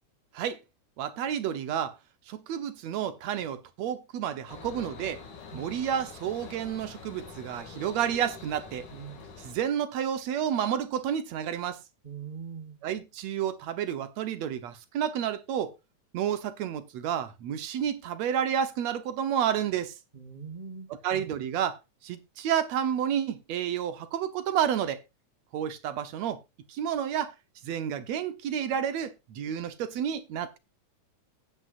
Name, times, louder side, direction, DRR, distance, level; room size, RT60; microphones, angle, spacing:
voice 1, 1.0-2.0 2.3-5.2 5.5-8.9 9.4-11.8 12.8-15.8 16.1-20.0 20.9-25.0 25.5-26.4 26.7-27.3 27.6-30.6, right 9 dB, 65° right, 2.1 m, -30 dB
sound 1, 4.5-9.5, left 5 dB, 80° left, 3.9 m, -46 dB
voice 2, 12.0-12.8 20.1-21.3, right 6 dB, 50° right, 0.5 m, -42 dB
15.5 x 8.9 x 2.5 m
omnidirectional pair, 3.5 m